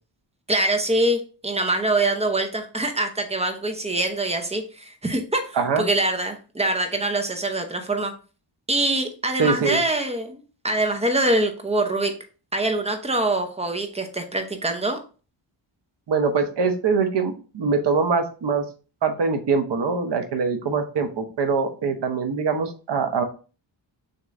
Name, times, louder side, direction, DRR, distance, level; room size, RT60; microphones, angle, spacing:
voice 1, 0.5-8.1 8.7-12.1 12.5-15.0, right 2 dB, 15° right, 6 dB, 0.7 m, -24 dB
voice 2, 9.4-9.8 16.1-18.6 19.0-23.2, right 5 dB, 60° right, 7 dB, 0.9 m, -23 dB
6.4 x 3.0 x 2.5 m, 0.36 s
wide cardioid pair, 130°, 46 cm